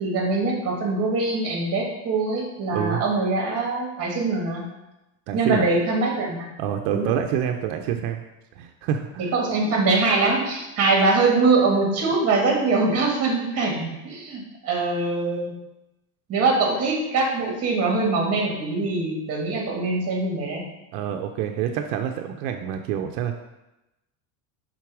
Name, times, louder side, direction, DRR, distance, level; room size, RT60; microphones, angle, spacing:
voice 1, 0.0-4.6 5.3-6.5 6.9-7.1 9.3-15.5 16.3-20.6, right 3 dB, 30° right, 0 dB, 1.6 m, -23 dB
voice 2, 2.7-3.0 5.3-5.7 6.6-8.2 8.6-9.3 20.9-23.4, right 9 dB, 85° right, 5 dB, 0.6 m, -27 dB
5.9 x 4.0 x 4.7 m, 0.96 s
cardioid pair, 160°, 47 cm